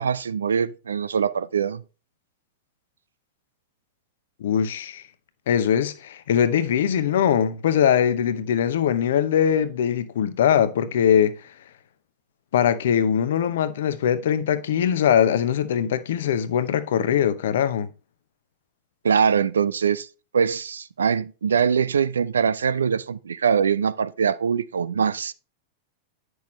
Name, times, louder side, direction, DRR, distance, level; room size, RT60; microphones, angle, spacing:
voice 1, 0.0-1.8 19.0-20.1 20.3-25.3, right 7 dB, 70° right, 0.4 m, -23 dB
voice 2, 4.4-5.0 5.5-11.5 12.5-17.9, left 9 dB, 60° left, 0.7 m, -21 dB
9.6 x 6.3 x 3.1 m
figure-of-eight pair, 90°, 0 cm